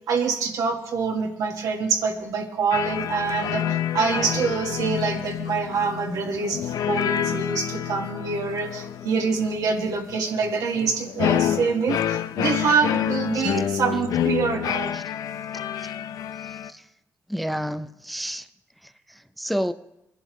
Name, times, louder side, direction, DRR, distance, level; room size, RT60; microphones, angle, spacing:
voice 1, 0.1-15.0 15.5-15.6, right 5 dB, 75° right, 2 dB, 1.7 m, -25 dB
sound 1, 2.7-16.7, left 10 dB, 75° left, 0.5 m, -28 dB
voice 2, 16.4-16.8 17.3-18.5 18.8-19.7, equal, ahead, 10 dB, 0.5 m, -30 dB
22.0 x 11.0 x 3.1 m, 0.85 s
cardioid pair, 90°, 6 cm